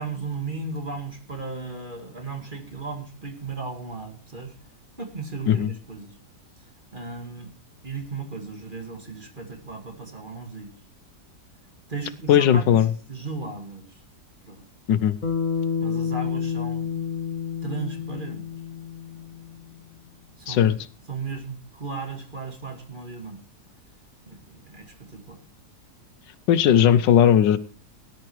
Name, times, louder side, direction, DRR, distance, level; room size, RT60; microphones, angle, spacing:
voice 1, 0.0-6.2 6.6-7.5 7.8-10.7 11.9-14.0 14.4-14.6 15.8-17.0 17.6-18.5 20.4-20.8 21.1-23.4 24.2-25.4, right 4 dB, 25° right, 4 dB, 2.1 m, -36 dB
voice 2, 12.3-12.9 14.9-15.2 20.5-20.8 26.5-27.6, left 9 dB, 75° left, 15 dB, 1.3 m, -17 dB
Bass guitar, 15.2-19.6, left 6 dB, 45° left, 2.3 m, -29 dB
18.5 x 11.0 x 3.0 m, 0.42 s
omnidirectional pair, 2.0 m